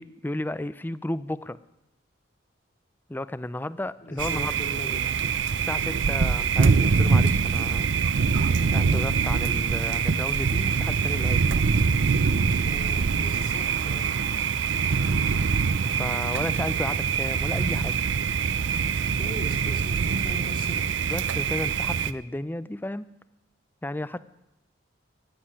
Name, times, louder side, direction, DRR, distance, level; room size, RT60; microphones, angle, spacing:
voice 1, 0.0-1.6 3.1-4.5 5.7-7.9 8.7-11.6 15.8-17.9 20.1-20.2 21.1-23.1 23.8-24.3, left 1 dB, 10° left, 16 dB, 0.4 m, -33 dB
voice 2, 4.0-5.1 12.6-14.1 19.2-21.2, left 1 dB, 45° left, -2 dB, 3.1 m, -40 dB
Thunder, 4.2-22.1, right 5 dB, 65° right, 0.5 m, -24 dB
14.5 x 7.6 x 9.9 m, 0.90 s
head